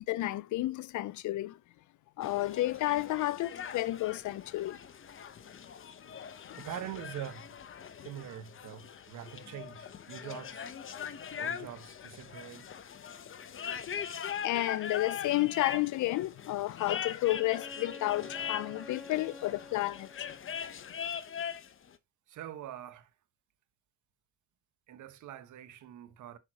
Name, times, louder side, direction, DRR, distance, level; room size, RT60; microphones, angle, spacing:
voice 1, 0.0-1.6 2.2-4.8 6.4-6.6 14.4-20.3, left 17 dB, 75° left, 0.5 m, -31 dB
sound 1, 2.2-21.7, left 8 dB, 45° left, 0.9 m, -41 dB
voice 2, 6.6-7.6 8.0-10.7 11.4-12.7 22.3-23.1 24.9-26.4, right 11 dB, 75° right, 1.2 m, -44 dB
Bowed string instrument, 17.2-20.7, left 2 dB, ahead, 0.8 m, -49 dB
6.6 x 5.9 x 2.9 m
cardioid pair, 90°, 30 cm